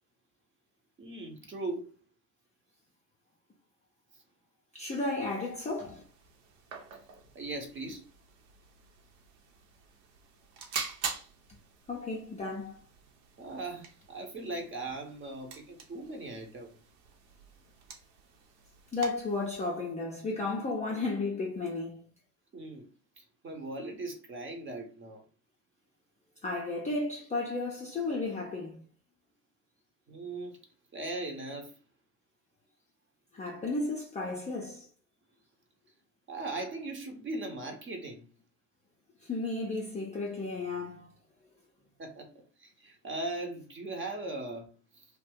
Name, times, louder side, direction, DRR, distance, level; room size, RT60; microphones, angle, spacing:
voice 1, 1.0-1.9 7.3-8.1 13.4-16.8 22.5-22.9 23.2-25.2 30.1-30.6 30.9-31.7 36.3-38.3 42.0-42.3 42.6-45.1, right 2 dB, 25° right, 0.9 m, -39 dB
voice 2, 4.7-6.0 11.9-12.8 18.9-22.1 26.4-28.8 33.3-34.9 39.2-41.1, left 3 dB, 15° left, 0.5 m, -33 dB
sound 1, 5.5-19.6, right 5 dB, 75° right, 0.9 m, -45 dB
2.5 x 2.2 x 3.6 m
hypercardioid pair, 80°, 49 cm